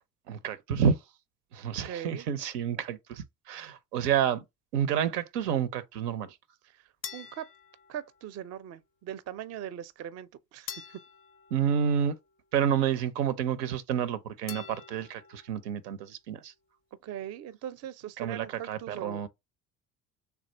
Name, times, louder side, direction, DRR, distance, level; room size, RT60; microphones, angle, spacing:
voice 1, 0.3-1.0 1.5-4.4 4.7-6.4 11.5-12.2 12.5-16.5 18.2-19.3, right 8 dB, 80° right, 0.6 m, -29 dB
voice 2, 1.8-2.3 6.6-7.5 7.9-11.0 16.9-19.3, right 10 dB, 35° right, 0.4 m, -40 dB
sound 1, 7.0-8.5 10.7-12.5 14.5-15.6, left 8 dB, 30° left, 0.4 m, -46 dB
3.3 x 2.3 x 4.2 m
hypercardioid pair, 60°, 47 cm